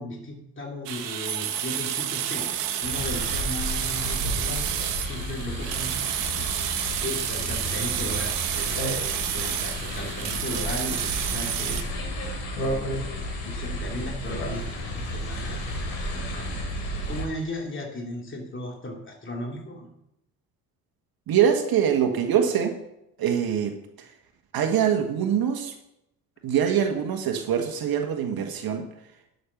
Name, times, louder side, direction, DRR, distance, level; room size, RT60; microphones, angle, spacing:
voice 1, 0.0-8.8 9.1-11.8 12.6-14.7 15.1-19.9, left 1 dB, 25° left, 0 dB, 2.9 m, -36 dB
sound 1, 0.9-11.8, right 10 dB, 70° right, 1.3 m, -30 dB
sound 2, 2.8-17.3, equal, 70° left, 3.2 m, -32 dB
voice 2, 21.3-22.8 23.2-23.7 24.0-24.1 24.5-25.7 26.4-28.9, right 8 dB, 45° right, 5 dB, 1.6 m, -24 dB
11.5 x 6.8 x 5.8 m, 0.81 s
figure-of-eight pair, 50°, 48 cm